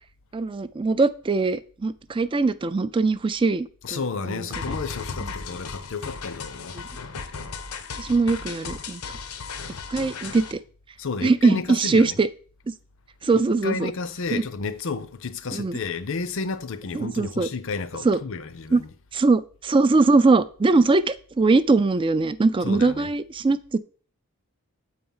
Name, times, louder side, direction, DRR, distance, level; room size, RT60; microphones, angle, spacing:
voice 1, 0.3-4.0 4.3-4.7 8.0-9.0 9.9-10.6 11.2-12.3 13.2-13.9 14.3-14.4 15.5-15.8 16.9-17.5 18.0-18.2 18.7-18.8 19.1-23.8, right 3 dB, 25° right, 0.3 m, -21 dB
voice 2, 3.8-6.8 11.0-12.2 13.3-18.9 22.6-23.1, left 4 dB, 60° left, 0.6 m, -32 dB
sound 1, 4.5-10.5, left 5 dB, 85° left, 0.9 m, -35 dB
7.9 x 4.4 x 5.5 m
head